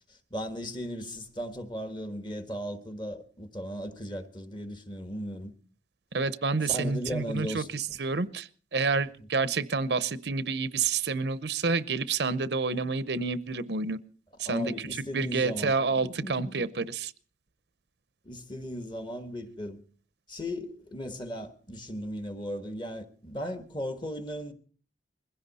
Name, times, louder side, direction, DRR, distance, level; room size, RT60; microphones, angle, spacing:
voice 1, 0.1-5.5 6.6-7.7 14.4-15.8 16.0-16.6 18.2-19.8 20.3-24.5, equal, 25° left, 1.4 m, -37 dB
voice 2, 6.1-14.0 14.4-17.1, right 4 dB, 70° right, 0.7 m, -29 dB
21.5 x 16.0 x 4.2 m
head